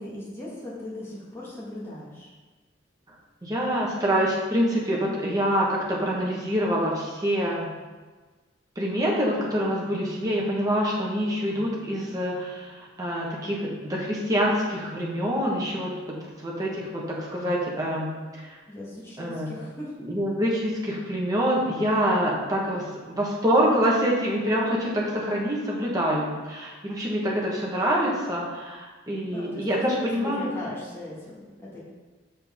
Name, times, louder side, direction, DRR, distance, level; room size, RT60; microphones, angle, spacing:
voice 1, 0.0-2.3 18.3-18.4 18.7-19.9 29.3-31.8, left 1 dB, 15° left, -7 dB, 1.7 m, -38 dB
voice 2, 3.4-7.7 8.8-18.5 19.2-19.5 20.0-30.5, equal, 20° right, -4 dB, 1.3 m, -26 dB
6.3 x 6.3 x 3.6 m, 1.3 s
head